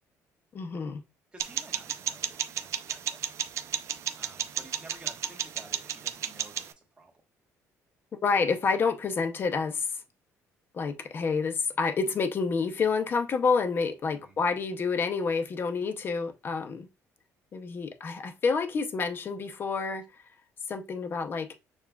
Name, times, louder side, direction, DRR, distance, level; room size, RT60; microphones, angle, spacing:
voice 1, 0.5-1.0 8.2-10.0 10.7-16.9 17.5-20.1 20.7-21.5, left 5 dB, 35° left, 0.6 m, -28 dB
voice 2, 1.3-3.4 4.1-7.1 14.2-14.4, right 2 dB, 15° right, 1.2 m, -52 dB
sound 1, 1.4-6.7, right 9 dB, 55° right, 0.5 m, -34 dB
6.6 x 2.4 x 2.3 m
cardioid pair, 130°, 6 cm